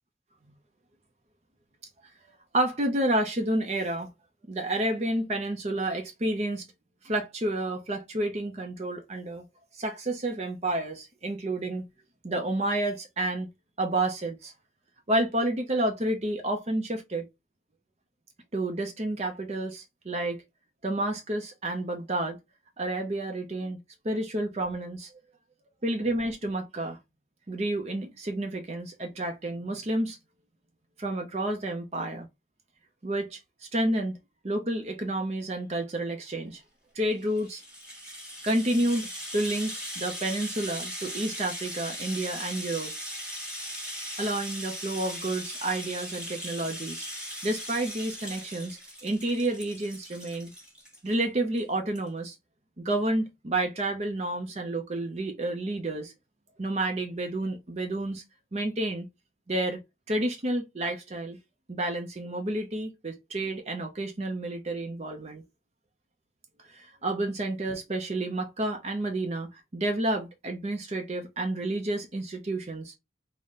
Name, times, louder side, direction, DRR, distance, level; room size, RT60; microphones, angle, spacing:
voice 1, 2.5-4.1 4.5-6.7 7.0-9.4 9.7-11.9 12.2-13.5 13.8-14.5 15.1-17.3 18.5-20.4 20.8-22.4 22.8-23.8 24.0-25.1 25.8-27.0 27.5-30.2 31.0-32.3 33.0-34.2 34.4-36.6 36.9-37.6 38.4-42.9 44.2-47.1 47.4-50.5 51.0-52.4 52.8-56.1 56.6-58.2 58.5-59.1 59.5-59.8 60.1-61.4 61.7-65.4 66.7-72.9, right 1 dB, 35° right, 0.6 m, -30 dB
Rattle (instrument), 37.1-51.2 51.6-51.7 51.9-52.1, equal, 5° right, 1.2 m, -39 dB
4.0 x 2.1 x 3.6 m
head